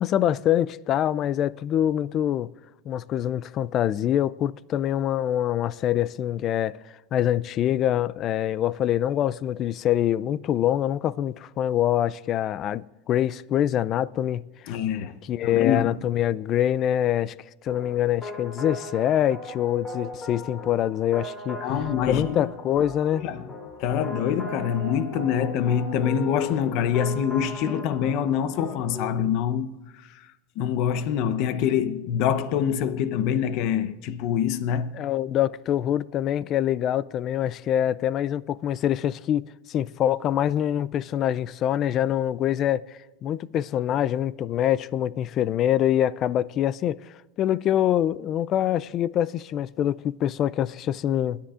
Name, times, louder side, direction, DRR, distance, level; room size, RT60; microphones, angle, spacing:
voice 1, 0.0-2.5 2.9-6.8 7.1-14.4 15.3-17.3 17.6-21.6 22.1-23.2 34.9-47.0 47.4-51.4, left 11 dB, 35° left, 0.3 m, -25 dB
voice 2, 14.7-16.0 21.6-22.5 23.2-23.5 23.8-29.8 30.1-30.2 30.6-35.0, left 8 dB, 55° left, 0.8 m, -25 dB
sound 1, 17.7-29.3, left 1 dB, 20° left, 2.9 m, -38 dB
29.5 x 10.0 x 2.5 m
supercardioid pair, 140°, 0 cm